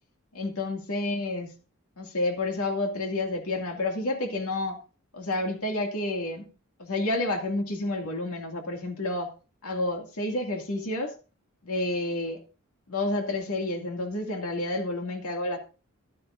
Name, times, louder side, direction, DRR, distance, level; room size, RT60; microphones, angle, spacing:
voice 1, 0.3-1.5 2.0-4.8 5.1-6.5 6.8-9.3 9.6-11.1 11.6-12.4 12.9-15.6, left 2 dB, 80° left, 2 dB, 2.3 m, -30 dB
14.5 x 12.0 x 2.6 m, 0.33 s
head